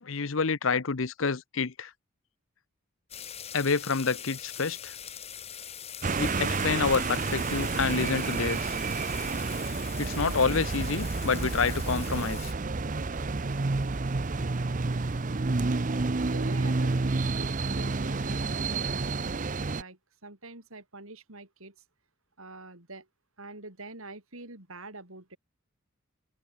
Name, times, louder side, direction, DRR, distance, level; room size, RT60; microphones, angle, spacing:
voice 1, 0.0-1.9 3.5-4.9 6.2-8.8 10.0-12.5, left 5 dB, 65° left, 0.8 m, -28 dB
sound 1, 3.1-12.5, left 9 dB, 30° left, 1.4 m, -43 dB
sound 2, 6.0-19.8, right 3 dB, 35° right, 0.6 m, -30 dB
voice 2, 16.2-21.8 22.4-23.1 23.4-25.4, right 2 dB, 75° right, 5.4 m, -45 dB
head